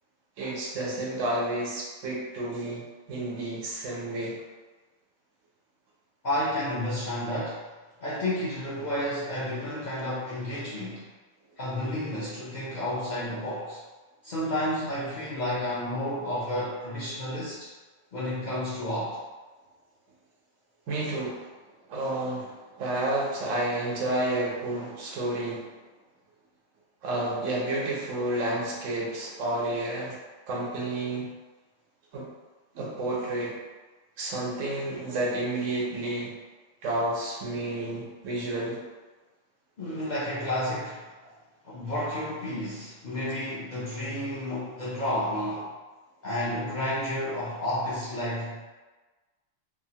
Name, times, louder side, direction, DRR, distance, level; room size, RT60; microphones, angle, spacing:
voice 1, 0.4-2.8 3.1-4.3 20.9-21.5 21.9-25.7 27.0-30.2 30.5-31.3 32.1-32.3 32.7-33.6 34.2-36.3 36.8-38.8, right 1 dB, 80° right, -4 dB, 1.1 m, -30 dB
voice 2, 6.2-7.7 8.0-11.1 11.6-13.8 14.2-17.7 18.1-19.2 39.8-41.1 41.6-45.7 46.2-48.6, left 1 dB, 55° left, -8 dB, 0.5 m, -31 dB
3.0 x 2.0 x 2.7 m, 1.3 s
omnidirectional pair, 1.3 m